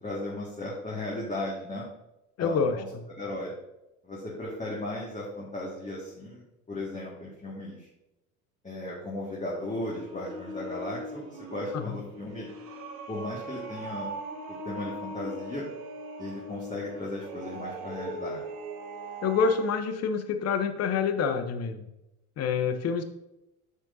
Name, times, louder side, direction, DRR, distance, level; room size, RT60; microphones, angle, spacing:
voice 1, 0.0-1.9 2.4-2.9 3.2-3.5 4.0-7.9 8.6-12.5 13.1-14.1 14.6-15.7 16.2-18.4, left 1 dB, 15° left, -5 dB, 1.8 m, -36 dB
voice 2, 2.4-2.8 11.7-12.0 19.2-21.9 22.4-23.0, left 5 dB, 35° left, 9 dB, 0.8 m, -27 dB
sound 1, 9.4-19.8, right 1 dB, 75° right, 1.4 m, -40 dB
8.2 x 6.4 x 2.7 m, 0.92 s
hypercardioid pair, 70°, 43 cm